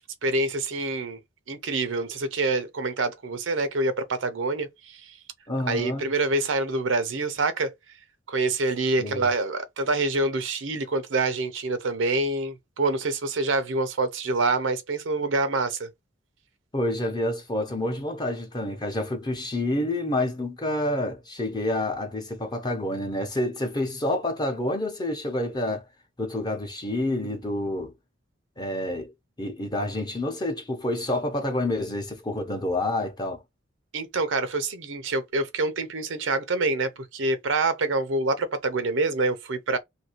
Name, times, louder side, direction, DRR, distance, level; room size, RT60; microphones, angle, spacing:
voice 1, 0.2-1.2 1.5-5.1 5.7-7.7 8.3-15.9 33.9-39.8, right 3 dB, 80° right, 0.7 m, -26 dB
voice 2, 5.5-6.1 9.0-9.3 16.7-25.8 26.2-27.9 28.6-29.1 29.4-33.4, left 1 dB, 20° left, 0.8 m, -28 dB
2.8 x 2.7 x 2.9 m
head